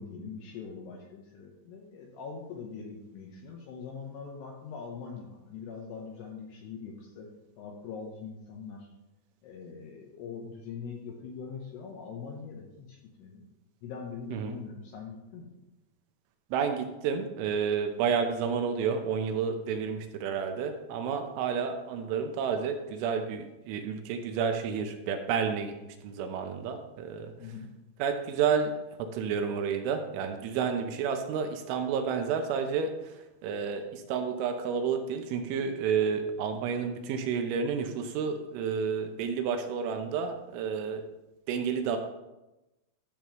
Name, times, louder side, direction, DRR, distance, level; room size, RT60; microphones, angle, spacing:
voice 1, 0.0-7.3 7.6-8.9 9.4-13.4 13.8-15.5 27.4-27.7, left 5 dB, 80° left, 0 dB, 2.5 m, -42 dB
voice 2, 16.5-25.7 26.0-27.3 28.0-28.7 29.0-32.9 33.4-41.0 41.5-42.0, right 6 dB, 80° right, 6 dB, 3.0 m, -30 dB
12.5 x 6.9 x 3.0 m, 0.98 s
omnidirectional pair, 5.8 m